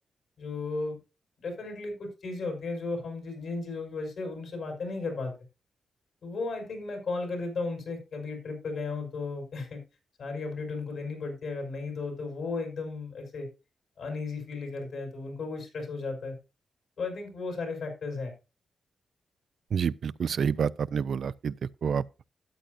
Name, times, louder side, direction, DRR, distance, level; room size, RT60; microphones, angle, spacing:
voice 1, 0.4-1.0 1.4-5.3 6.2-9.8 10.2-13.5 14.0-16.4 17.0-18.3, left 3 dB, 70° left, 5.4 m, -35 dB
voice 2, 19.7-21.5 21.8-22.0, right 7 dB, 65° right, 0.4 m, -28 dB
12.5 x 9.3 x 2.6 m
cardioid pair, 85°, 0 cm